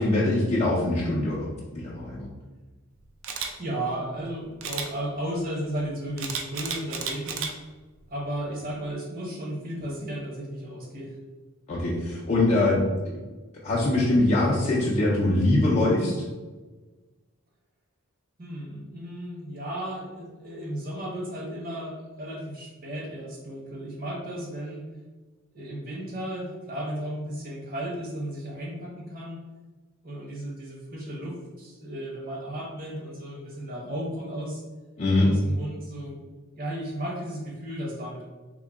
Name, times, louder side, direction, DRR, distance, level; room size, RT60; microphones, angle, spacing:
voice 1, 0.0-2.3 11.7-12.8 13.6-16.2 35.0-35.3, left 2 dB, 30° left, -6 dB, 0.4 m, -23 dB
Camera, 3.2-3.5 4.6-4.9 6.2-7.5 8.0-8.2, right 6 dB, 60° right, 0.4 m, -32 dB
voice 2, 3.6-7.5 8.1-11.1 18.4-24.8 25.5-29.4 30.0-34.6 35.2-36.2 36.5-38.2, right 1 dB, 40° right, -3 dB, 0.8 m, -34 dB
3.6 x 2.1 x 3.4 m, 1.3 s
head